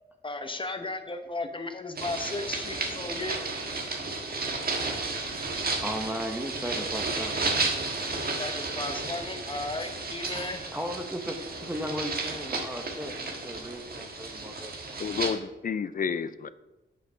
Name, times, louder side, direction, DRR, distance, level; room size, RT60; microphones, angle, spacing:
voice 1, 0.2-3.4 8.4-10.6, left 2 dB, 25° left, 7 dB, 0.9 m, -35 dB
sound 1, 1.9-15.3, right 3 dB, 50° right, 1.4 m, -33 dB
voice 2, 5.8-7.9 9.0-9.2 10.3-15.2 15.5-15.6, equal, 10° right, 4 dB, 0.8 m, -37 dB
voice 3, 15.0-16.5, left 6 dB, 45° left, 15 dB, 0.4 m, -30 dB
7.7 x 6.1 x 5.5 m, 1.0 s
wide cardioid pair, 100°, 20 cm